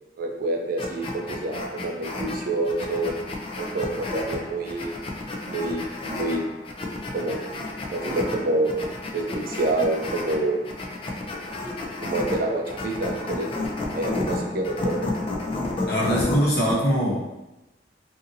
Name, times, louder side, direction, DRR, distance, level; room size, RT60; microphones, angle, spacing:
voice 1, 0.2-3.1 3.6-5.0 5.4-6.4 7.1-7.4 7.8-8.8 9.1-10.6 12.0-13.5 13.9-15.1, right 2 dB, 55° right, 2 dB, 0.4 m, -27 dB
sound 1, 0.8-16.8, left 2 dB, 30° left, 0.3 m, -32 dB
voice 2, 15.9-17.4, equal, 60° left, -6 dB, 0.8 m, -23 dB
2.6 x 2.5 x 2.6 m, 0.99 s
head